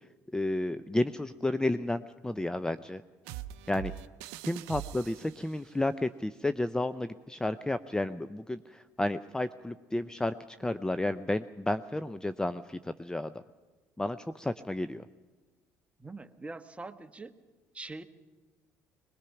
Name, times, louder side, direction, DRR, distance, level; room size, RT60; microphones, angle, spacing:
voice 1, 0.3-3.0 3.7-3.9 4.4-13.3 14.0-15.0, left 1 dB, 10° left, 12 dB, 0.6 m, -32 dB
sound 1, 3.3-5.6, right 13 dB, 85° right, 0.6 m, -42 dB
voice 2, 16.0-17.3 17.7-18.0, right 3 dB, 15° right, 8 dB, 1.3 m, -43 dB
21.5 x 21.0 x 5.9 m, 1.3 s
supercardioid pair, 70°, 7 cm